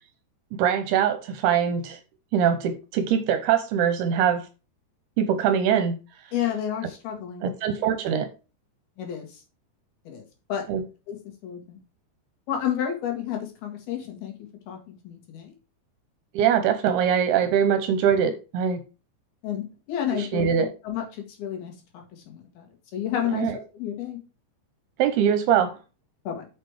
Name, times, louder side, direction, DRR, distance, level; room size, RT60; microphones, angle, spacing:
voice 1, 0.6-2.0 2.3-4.5 5.2-6.0 7.4-8.3 10.7-10.8 16.3-18.8 20.1-20.7 23.3-23.6 25.0-25.8, right 8 dB, 75° right, 2.5 m, -22 dB
voice 2, 6.3-7.5 9.0-9.4 10.1-10.2 10.5-10.6 11.1-11.2 11.4-11.8 12.5-14.3 14.7-15.5 19.4-20.5 20.8-22.7 22.9-24.2 26.3-26.5, left 10 dB, 65° left, 3.6 m, -31 dB
6.6 x 6.5 x 4.8 m
omnidirectional pair, 5.1 m